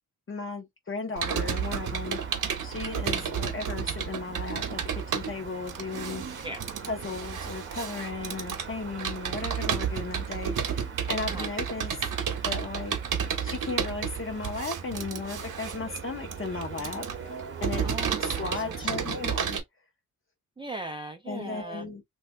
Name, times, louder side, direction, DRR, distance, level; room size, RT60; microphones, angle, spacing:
voice 1, 0.3-2.2 2.6-4.8 5.1-6.3 6.9-12.1 12.4-13.0 13.4-17.8 18.2-19.6 21.3-22.0, left 3 dB, 35° left, 1.0 m, -35 dB
sound 1, 1.2-19.3, right 6 dB, 35° right, 0.9 m, -42 dB
Computer keyboard, 1.2-19.6, right 7 dB, 60° right, 0.9 m, -32 dB
voice 2, 17.8-19.2 20.6-21.9, right 2 dB, 15° right, 0.5 m, -39 dB
3.3 x 2.5 x 3.2 m
wide cardioid pair, 150°, 36 cm